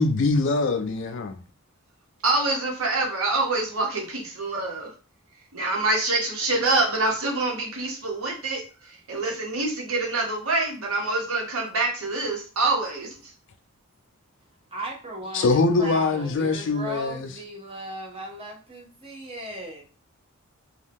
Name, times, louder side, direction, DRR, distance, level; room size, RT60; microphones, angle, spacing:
voice 1, 0.0-1.4 15.3-17.3, left 3 dB, 55° left, 0.4 m, -23 dB
voice 2, 2.2-4.9 5.5-8.6 8.9-13.1, right 2 dB, 75° right, 1.0 m, -26 dB
voice 3, 14.7-19.8, equal, 25° right, 0.8 m, -36 dB
2.6 x 2.3 x 3.4 m
head